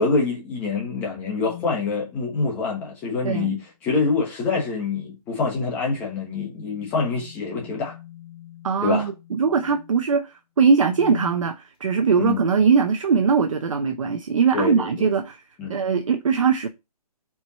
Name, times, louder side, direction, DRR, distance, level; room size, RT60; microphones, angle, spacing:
voice 1, 0.0-8.0 8.8-9.1 12.2-12.4 14.5-15.1 15.6-15.8, left 4 dB, 10° left, 1.2 m, -25 dB
sound 1, 1.4-1.8 3.2-3.7 5.9-10.1 10.8-11.4, left 14 dB, 35° left, 3.2 m, -43 dB
voice 2, 3.2-3.6 8.6-15.4 15.7-16.7, right 5 dB, 55° right, 0.9 m, -21 dB
4.7 x 4.3 x 5.5 m
hypercardioid pair, 170°, 20 cm